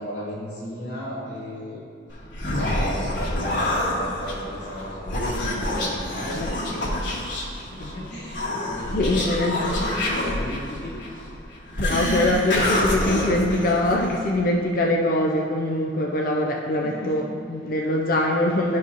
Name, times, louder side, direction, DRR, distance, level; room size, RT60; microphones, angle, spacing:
voice 1, 0.0-1.8 2.5-9.2 9.6-11.3 16.8-17.2, equal, 70° left, -8 dB, 1.1 m, -36 dB
Human voice, 2.1-14.3, left 1 dB, 90° left, 1.7 m, -27 dB
voice 2, 8.9-9.7 11.8-18.8, left 1 dB, 50° left, -1 dB, 0.4 m, -23 dB
11.0 x 4.7 x 2.9 m, 2.3 s
head